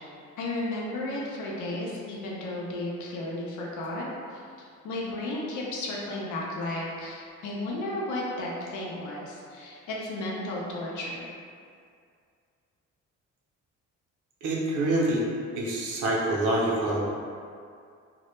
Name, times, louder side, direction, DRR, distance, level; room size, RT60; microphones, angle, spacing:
voice 1, 0.4-4.1 4.8-11.3, left 1 dB, 75° left, -4 dB, 0.6 m, -33 dB
voice 2, 14.4-15.2 15.5-17.1, right 1 dB, 80° right, -4 dB, 0.6 m, -26 dB
2.1 x 2.0 x 3.0 m, 2.3 s
cardioid pair, 90°, 30 cm